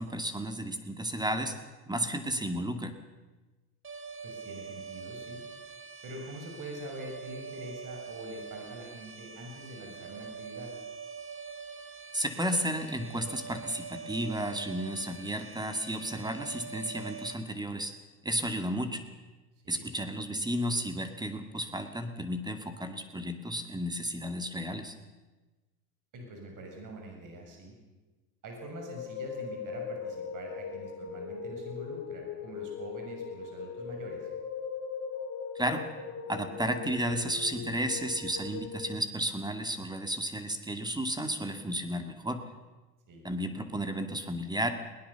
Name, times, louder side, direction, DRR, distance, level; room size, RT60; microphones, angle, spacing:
voice 1, 0.0-1.6 1.9-3.0 12.1-17.9 18.2-19.0 19.7-25.0 35.6-35.8 36.3-42.4 43.2-44.7, right 1 dB, 10° right, 7 dB, 2.2 m, -33 dB
sound 1, 3.8-17.4, right 5 dB, 25° right, 4.5 m, -44 dB
voice 2, 4.2-5.4 6.0-10.7 19.6-19.9 26.1-27.7 28.4-34.2 43.1-43.2, right 1 dB, 45° right, 1 dB, 6.6 m, -44 dB
sound 2, 28.6-38.8, left 6 dB, 35° left, 6.5 m, -39 dB
21.0 x 18.5 x 7.0 m, 1.2 s
hypercardioid pair, 80°, 46 cm